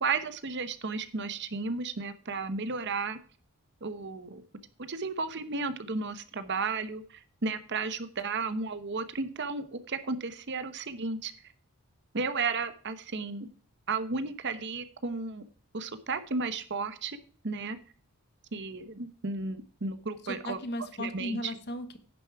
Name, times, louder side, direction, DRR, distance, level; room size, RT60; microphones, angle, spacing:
voice 1, 0.0-3.2 3.8-4.4 4.8-11.3 12.1-13.5 13.9-15.4 15.7-17.2 17.4-17.8 18.5-20.6 21.0-21.5, right 4 dB, 50° right, 12 dB, 1.0 m, -33 dB
voice 2, 20.2-22.0, left 1 dB, 50° left, 11 dB, 1.2 m, -36 dB
10.5 x 7.0 x 4.7 m, 0.43 s
head